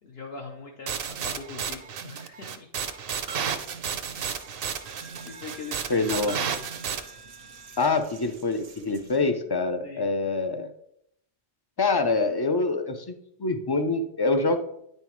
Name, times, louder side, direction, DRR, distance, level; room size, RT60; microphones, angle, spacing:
voice 1, 0.0-2.7 3.7-3.9 5.2-6.6 9.0-10.2, left 4 dB, 70° left, 0 dB, 1.0 m, -42 dB
sound 1, 0.9-7.0, right 7 dB, 65° right, 0.8 m, -32 dB
Coin (dropping), 3.3-9.3, right 5 dB, 85° right, 1.1 m, -48 dB
voice 2, 5.9-6.4 7.8-10.7 11.8-14.6, left 3 dB, 40° left, 8 dB, 0.3 m, -25 dB
9.2 x 5.5 x 3.0 m, 0.74 s
omnidirectional pair, 1.1 m